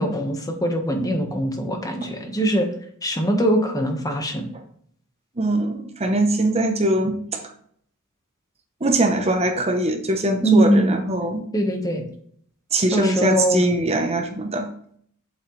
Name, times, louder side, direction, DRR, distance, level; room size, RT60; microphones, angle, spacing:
voice 1, 0.0-2.7 3.0-4.5 10.4-11.0 11.5-12.0 12.9-13.6, right 1 dB, 15° left, 4 dB, 1.3 m, -21 dB
voice 2, 5.4-7.4 8.8-11.4 12.7-14.7, right 1 dB, 30° right, 5 dB, 0.8 m, -22 dB
8.5 x 7.7 x 3.2 m, 0.63 s
head